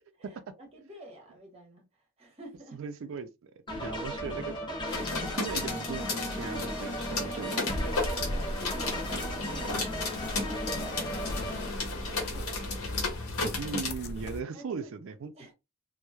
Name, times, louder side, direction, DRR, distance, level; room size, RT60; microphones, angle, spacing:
voice 1, 0.2-1.9 2.2-2.8 3.8-4.1 7.3-12.9 13.5-13.8 14.5-14.9 15.3-15.5, right 1 dB, 30° right, 0.9 m, -48 dB
voice 2, 2.7-4.6 5.3-7.9 13.6-15.5, right 5 dB, 65° right, 0.4 m, -38 dB
sound 1, 3.7-11.7, equal, 20° left, 0.7 m, -36 dB
sound 2, 4.9-13.9, left 3 dB, 80° left, 0.8 m, -34 dB
sound 3, 7.6-14.4, left 1 dB, 50° left, 0.4 m, -38 dB
2.9 x 2.0 x 2.2 m
head